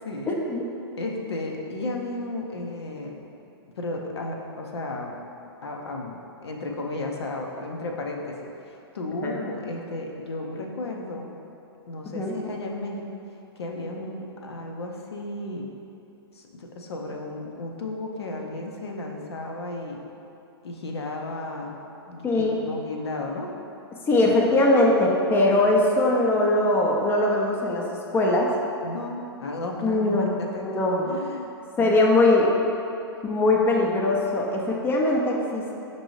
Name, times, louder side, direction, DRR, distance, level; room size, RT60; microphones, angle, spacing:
voice 1, 0.3-0.6 9.2-9.4 12.1-12.3 22.2-22.6 24.1-27.9 28.1-28.5 29.8-30.3 30.6-31.1 31.8-32.5 33.2-35.7, left 2 dB, 15° left, -1 dB, 0.5 m, -21 dB
voice 2, 1.0-3.2 3.8-5.1 5.6-11.3 11.9-13.0 13.6-15.7 16.3-20.0 20.6-21.8 22.1-23.5 28.8-31.5 31.8-32.2, left 2 dB, 80° left, 1 dB, 0.6 m, -34 dB
6.0 x 2.7 x 3.0 m, 2.8 s
hypercardioid pair, 110°, 14 cm